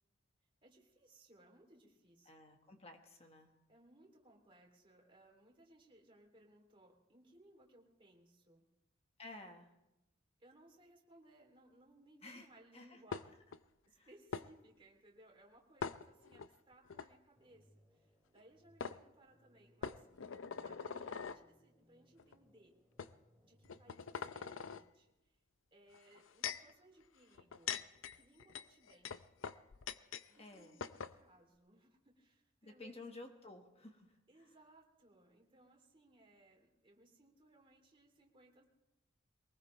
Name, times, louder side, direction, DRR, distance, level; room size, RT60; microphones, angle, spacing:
voice 1, 0.6-2.3 3.7-8.7 10.4-13.4 13.8-20.3 20.6-22.8 23.4-25.4 25.7-29.2 30.3-33.0 34.3-38.7, right 1 dB, 25° right, 0 dB, 2.7 m, -65 dB
voice 2, 2.2-3.5 9.2-9.7 12.2-12.5 12.7-13.0 13.3-13.4 13.9-14.1 30.4-30.8 32.6-34.5, left 2 dB, 30° left, 4 dB, 1.3 m, -53 dB
sound 1, 13.1-13.6 14.3-14.5 15.8-16.5 16.9-17.1 18.4-18.5 18.8-19.0 19.8-21.4 22.2-22.3 23.0-23.1 23.6-24.8 25.9-26.7 27.4-30.3 30.5-30.6 30.8-31.2, left 6 dB, 70° left, 0.5 m, -43 dB
sound 2, 17.4-24.9, equal, 5° left, 3.4 m, -71 dB
22.5 x 19.5 x 3.1 m, 0.95 s
head